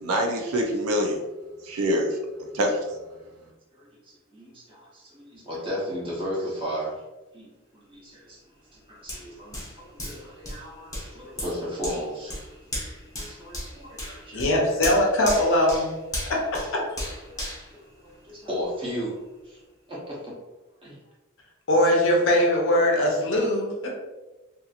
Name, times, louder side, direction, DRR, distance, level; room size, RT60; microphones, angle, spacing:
voice 1, 0.0-1.2 1.6-3.0, equal, 75° right, 1 dB, 0.5 m, -25 dB
voice 2, 3.7-6.9 7.3-8.4 8.7-12.4 12.8-14.6 16.4-16.5 17.3-17.4 18.0-19.1 19.4-19.6 19.9-20.3 20.8-21.0, equal, 25° right, -6 dB, 1.0 m, -35 dB
Hands, 9.1-18.6 19.1-19.2, left 1 dB, 15° left, 0.8 m, -36 dB
voice 3, 14.3-15.9 16.3-16.4 16.7-16.8 21.7-23.9, left 1 dB, 60° left, -1 dB, 0.7 m, -21 dB
2.8 x 2.6 x 2.4 m, 1.1 s
head